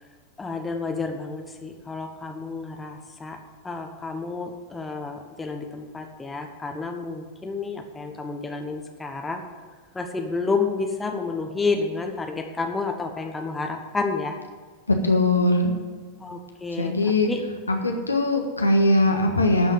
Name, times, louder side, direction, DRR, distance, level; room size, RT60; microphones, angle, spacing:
voice 1, 0.4-3.4 3.6-9.4 9.9-14.4 16.2-17.4, left 4 dB, 10° left, 4 dB, 1.2 m, -30 dB
voice 2, 14.9-15.7 16.8-17.3 17.7-19.7, left 2 dB, 80° left, 3 dB, 1.4 m, -21 dB
12.0 x 5.6 x 9.0 m, 1.5 s
figure-of-eight pair, 90°, 0 cm